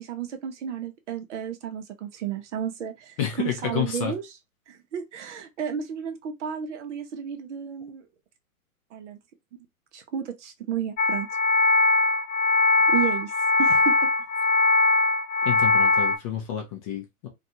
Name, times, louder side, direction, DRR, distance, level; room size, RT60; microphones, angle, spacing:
voice 1, 0.0-4.3 4.7-8.1 8.9-9.2 9.9-11.3 12.9-13.3 13.6-14.0, right 8 dB, 55° right, 0.7 m, -32 dB
voice 2, 3.2-4.1 15.4-17.3, left 9 dB, 25° left, 0.4 m, -29 dB
sound 1, 11.0-16.2, left 3 dB, 60° left, 0.7 m, -21 dB
2.6 x 2.3 x 2.6 m
hypercardioid pair, 115°, 44 cm